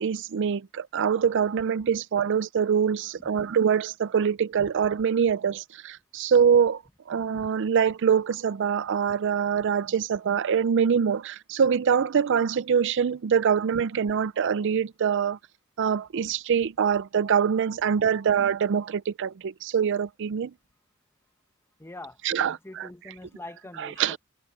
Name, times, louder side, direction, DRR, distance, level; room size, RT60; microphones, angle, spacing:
voice 1, 0.0-6.8 7.1-15.4 15.8-20.5 22.2-22.9 23.8-24.2, right 7 dB, 55° right, 0.4 m, -24 dB
voice 2, 21.8-24.2, left 2 dB, 10° left, 0.9 m, -44 dB
open air
head